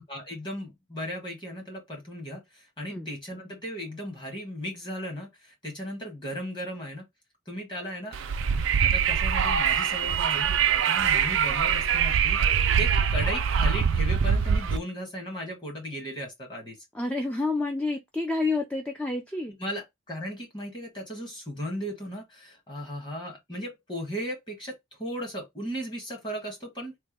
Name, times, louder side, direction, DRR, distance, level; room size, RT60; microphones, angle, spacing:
voice 1, 0.1-7.0 7.5-8.2 8.8-12.4 12.8-16.8 19.6-26.9, equal, 25° left, 1.2 m, -36 dB
Wind, 8.1-14.8, right 7 dB, 75° right, 0.4 m, -23 dB
voice 2, 16.9-19.5, left 3 dB, 5° left, 0.3 m, -29 dB
3.3 x 2.2 x 3.3 m
head